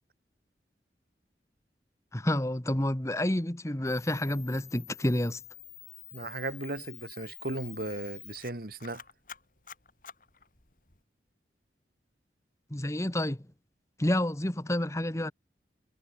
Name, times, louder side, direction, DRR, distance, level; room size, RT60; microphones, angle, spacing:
voice 1, 2.1-5.4 12.7-13.5 14.0-15.3, left 1 dB, 15° left, 1.2 m, -29 dB
Camera, 3.8-11.0, left 12 dB, 50° left, 4.9 m, -49 dB
voice 2, 6.1-9.0, right 2 dB, 55° right, 2.1 m, -36 dB
head